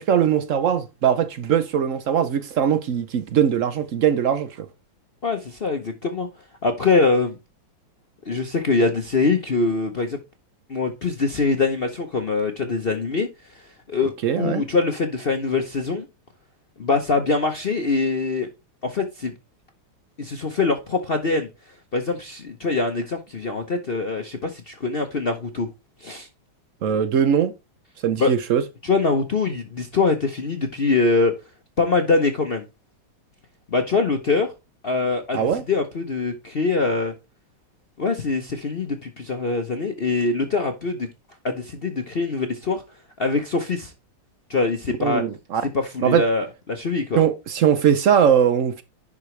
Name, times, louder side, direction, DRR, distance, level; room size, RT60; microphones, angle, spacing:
voice 1, 0.0-4.7 14.2-14.6 26.8-27.5 28.0-28.6 35.3-35.6 45.0-45.6 46.0-46.2 47.1-48.8, right 8 dB, 75° right, 0.7 m, -20 dB
voice 2, 5.2-6.3 6.6-7.4 8.3-10.2 10.7-16.1 16.8-18.5 18.8-19.3 20.2-21.5 21.9-25.7 26.0-26.3 28.2-28.3 28.8-31.3 31.8-32.6 33.7-34.5 34.8-37.1 38.0-41.1 41.4-42.8 43.2-43.9 44.5-45.2 45.7-47.2, left 3 dB, 45° left, 0.7 m, -23 dB
10.5 x 4.9 x 3.2 m
omnidirectional pair, 2.1 m